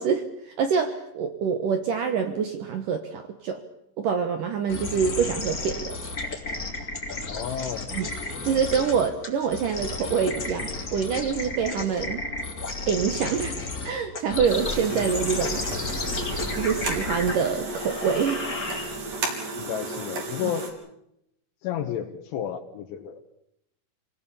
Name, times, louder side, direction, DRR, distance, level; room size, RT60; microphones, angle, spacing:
voice 1, 0.0-3.6 4.0-6.0 7.9-8.1 8.4-12.2 12.9-13.6 13.8-15.6 16.5-18.4, right 6 dB, 80° right, 7 dB, 1.9 m, -26 dB
sound 1, 4.7-19.2, left 3 dB, 25° left, 2.4 m, -33 dB
voice 2, 7.3-7.9 19.6-20.7 21.6-23.2, left 9 dB, 75° left, 3 dB, 3.5 m, -31 dB
sound 2, 14.5-20.7, right 3 dB, 45° right, 4.9 m, -34 dB
28.0 x 19.0 x 7.0 m, 0.80 s
omnidirectional pair, 5.7 m